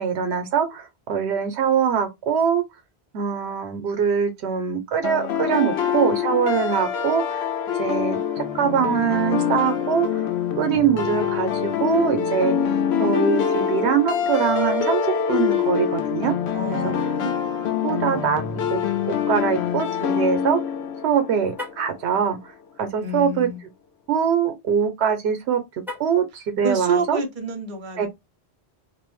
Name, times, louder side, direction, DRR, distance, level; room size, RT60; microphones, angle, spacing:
voice 1, 0.0-2.6 3.1-7.5 7.8-10.2 10.6-12.6 13.0-16.3 16.7-16.9 17.8-18.4 18.7-18.8 19.3-20.6 21.0-22.4 22.8-23.5 24.1-25.6 26.0-27.2 28.0-28.1, right 7 dB, 85° right, 0.9 m, -23 dB
sound 1, 5.0-21.9, left 8 dB, 80° left, 0.9 m, -25 dB
voice 2, 16.5-17.3 23.0-23.6 26.6-28.1, right 2 dB, 50° right, 0.9 m, -28 dB
Car, 21.5-21.9 25.8-26.3, left 2 dB, 5° right, 0.5 m, -36 dB
2.5 x 2.0 x 3.0 m
omnidirectional pair, 1.1 m